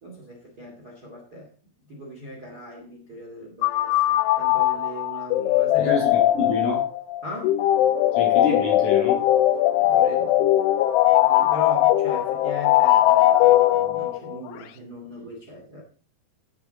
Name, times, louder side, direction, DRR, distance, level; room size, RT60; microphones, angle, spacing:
voice 1, 0.0-1.5 1.8-6.0 7.2-7.6 9.8-10.5 11.2-15.8, left 1 dB, 30° right, 1.8 m, -39 dB
sound 1, 3.6-14.4, left 13 dB, 80° left, 3.1 m, -20 dB
voice 2, 5.8-6.9 8.1-9.2, left 4 dB, 50° left, 3.1 m, -27 dB
15.5 x 6.9 x 4.0 m
omnidirectional pair, 5.7 m